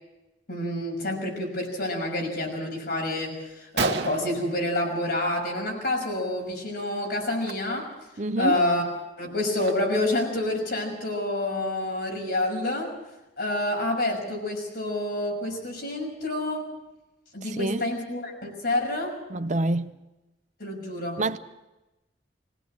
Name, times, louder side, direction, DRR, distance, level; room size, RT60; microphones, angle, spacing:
voice 1, 0.5-7.9 8.4-8.9 9.2-13.0 13.4-16.7 17.3-19.2 20.6-21.2, left 1 dB, 60° left, 6.1 m, -28 dB
Gunshot gunfire, 3.1-3.2 3.5-3.6 3.8-5.4 5.7-6.1 6.3-6.5 7.3-7.5 8.1-8.2 8.6-10.2, right 3 dB, 75° right, 1.4 m, -32 dB
voice 2, 8.2-8.6 17.4-17.9 19.3-19.9 21.2-21.4, right 2 dB, 45° right, 0.6 m, -27 dB
21.0 x 17.0 x 7.5 m
head